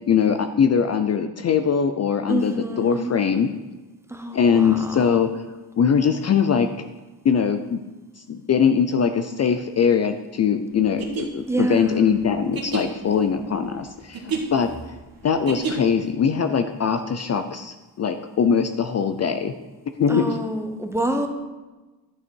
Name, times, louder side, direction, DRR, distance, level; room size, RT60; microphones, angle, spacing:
voice 1, 0.1-3.5 4.3-5.4 5.8-6.7 7.2-7.8 8.3-15.0 15.2-19.5 20.0-20.4, left 7 dB, 40° left, 8 dB, 0.5 m, -21 dB
voice 2, 2.3-3.1 4.1-5.2 11.5-12.2 20.1-21.3, right 1 dB, 5° right, 5 dB, 0.9 m, -27 dB
sound 1, 10.8-16.1, right 5 dB, 60° right, 2.0 m, -31 dB
11.0 x 8.6 x 4.6 m, 1.2 s
wide cardioid pair, 155°, 40 cm